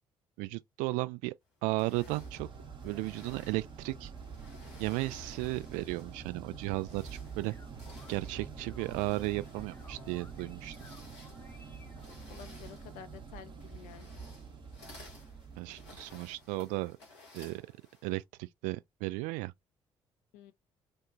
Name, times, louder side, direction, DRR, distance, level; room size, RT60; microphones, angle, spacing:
voice 1, 0.4-1.3 1.6-2.5 2.8-4.1 4.8-7.5 8.1-10.8 15.6-17.0 17.3-17.6 18.0-19.5, right 21 dB, 60° right, 0.4 m, -35 dB
sound 1, 1.6-6.2 6.7-18.2, left 2 dB, 85° left, 1.1 m, -57 dB
sound 2, 1.9-16.9, right 5 dB, 35° right, 0.8 m, -47 dB
sound 3, 7.2-12.5, left 2 dB, 15° left, 0.7 m, -56 dB
voice 2, 12.3-14.1 20.3-20.5, left 9 dB, 60° left, 0.5 m, -50 dB
2.7 x 2.3 x 2.5 m
figure-of-eight pair, 45°, 14 cm